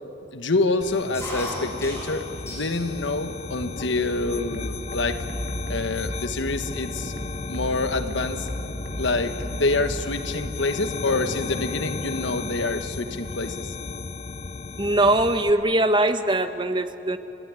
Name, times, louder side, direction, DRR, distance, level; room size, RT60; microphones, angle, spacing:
voice 1, 0.3-5.2 5.7-7.1 7.5-8.5 9.0-13.7, left 2 dB, 85° left, 9 dB, 1.4 m, -26 dB
sound 1, 0.8-15.5, left 4 dB, 35° left, 0.5 m, -34 dB
sound 2, 1.1-2.9 3.3-4.0 4.6-4.7 5.0-5.4 6.0-6.1 6.3-8.6 8.8-9.2 10.5-10.7 11.8-11.9 12.2-12.3 12.5-13.4, left 1 dB, 15° left, 6.0 m, -38 dB
sound 3, 4.2-10.2, equal, 65° right, 2.4 m, -36 dB
voice 2, 14.8-17.2, right 1 dB, 25° right, 9 dB, 1.0 m, -21 dB
30.0 x 16.5 x 9.8 m, 2.9 s
head